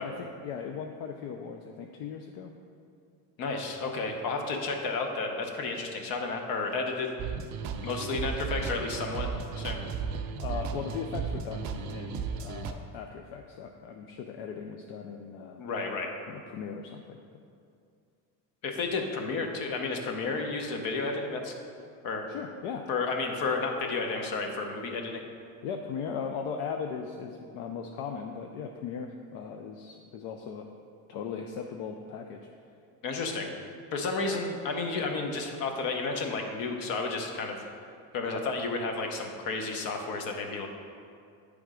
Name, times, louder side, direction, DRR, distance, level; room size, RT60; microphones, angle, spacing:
voice 1, 0.0-2.5 10.4-15.6 16.3-17.2 22.3-22.9 25.6-30.7 31.1-32.5, left 6 dB, 75° left, 3 dB, 0.6 m, -38 dB
voice 2, 3.4-7.1 7.8-9.3 9.6-9.8 15.6-16.1 18.6-21.5 22.0-22.3 22.9-25.2 33.0-33.5 33.9-37.6 38.1-40.7, left 3 dB, 60° left, 3 dB, 0.9 m, -32 dB
sound 1, 7.2-12.7, right 5 dB, 45° right, 0.5 m, -35 dB
8.9 x 3.5 x 4.9 m, 2.4 s
cardioid pair, 155°, 41 cm